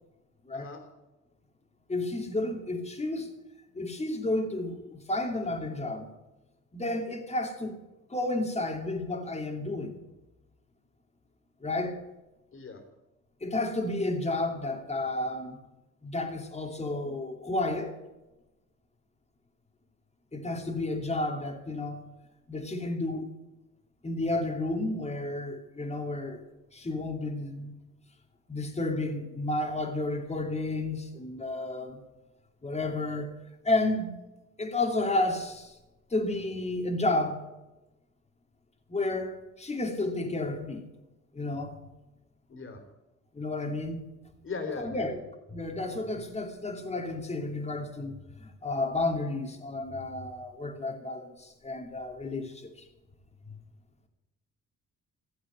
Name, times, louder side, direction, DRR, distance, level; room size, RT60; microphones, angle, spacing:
voice 1, 1.9-3.3 3.7-6.1 6.7-7.8 8.1-10.0 11.6-12.0 13.4-15.6 16.0-18.0 20.3-22.0 22.5-23.3 24.0-26.5 26.7-27.7 28.5-32.0 32.6-33.3 33.6-34.2 34.6-35.8 36.1-37.4 38.9-40.8 41.3-41.8 43.3-44.0 44.8-45.2 45.5-52.7 53.5-53.6, left 2 dB, 20° left, 2.7 m, -31 dB
voice 2, 12.5-12.8 42.5-42.8 44.4-45.2, left 4 dB, 45° left, 3.6 m, -38 dB
15.5 x 8.1 x 9.5 m
cardioid pair, 90°, 30 cm